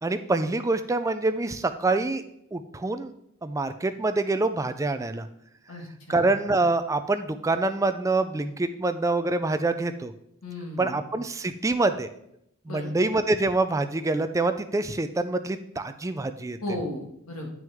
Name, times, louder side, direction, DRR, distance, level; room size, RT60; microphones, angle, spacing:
voice 1, 0.0-2.2 2.5-3.1 3.4-5.3 6.1-10.1 10.8-12.1 12.7-16.6, right 2 dB, 15° right, 10 dB, 0.4 m, -26 dB
voice 2, 5.7-6.3 10.4-11.0 12.7-12.9 16.6-17.5, left 1 dB, 80° left, 0 dB, 1.8 m, -35 dB
9.1 x 6.2 x 3.5 m, 0.76 s
head